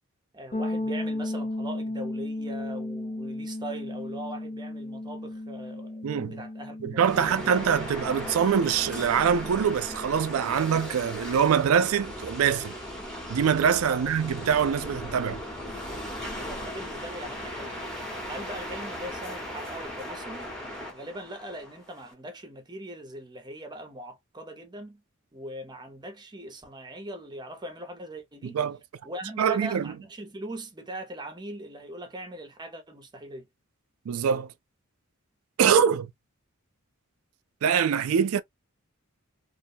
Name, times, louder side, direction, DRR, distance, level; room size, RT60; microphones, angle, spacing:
voice 1, 0.3-6.0 6.3-7.8 13.8-14.1 16.3-17.8 18.3-20.5 20.9-25.0 25.3-28.6 29.0-33.4, right 1 dB, 20° right, 0.7 m, -41 dB
sound 1, 0.5-10.2, left 1 dB, 35° left, 0.5 m, -35 dB
voice 2, 6.0-6.4 6.8-12.7 13.3-15.4 28.4-28.8 29.4-29.9 34.1-34.5 35.6-36.1 37.6-38.4, right 7 dB, 70° right, 0.4 m, -24 dB
sound 2, 7.0-22.1, equal, 5° left, 0.9 m, -37 dB
2.5 x 2.2 x 2.6 m
head